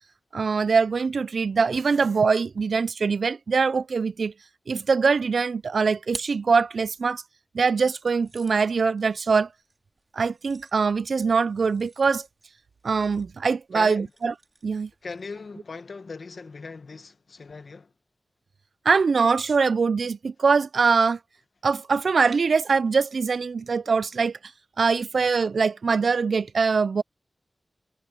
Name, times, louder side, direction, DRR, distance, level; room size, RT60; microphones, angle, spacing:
voice 1, 0.3-4.3 4.7-7.2 7.5-9.5 10.1-12.3 12.8-14.3 14.6-14.9 18.9-21.2 21.6-24.4 24.8-27.0, right 5 dB, 80° right, 0.3 m, -23 dB
sound 1, 5.6-7.2 7.9-15.5, right 3 dB, 50° right, 2.9 m, -49 dB
voice 2, 13.7-14.1 15.0-17.9, left 4 dB, 70° left, 1.1 m, -39 dB
wide cardioid pair, 90°, 0 cm